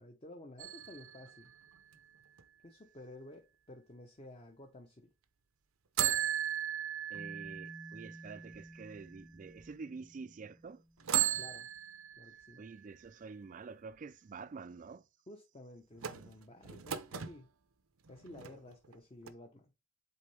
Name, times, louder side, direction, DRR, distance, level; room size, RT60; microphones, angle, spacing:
voice 1, 0.0-1.5 2.6-5.1 11.4-11.7 12.2-12.6 15.3-17.5 18.1-19.7, left 1 dB, 30° left, 0.8 m, -53 dB
sound 1, 0.6-2.4 6.0-9.1 9.6-9.7 11.0-12.8 16.0-17.4 18.0-19.0 19.3-19.4, right 11 dB, 90° right, 0.7 m, -37 dB
sound 2, 7.1-11.4, equal, 15° right, 0.7 m, -54 dB
voice 2, 7.1-10.8 12.6-15.0, right 4 dB, 40° right, 0.3 m, -48 dB
8.1 x 3.8 x 3.3 m
head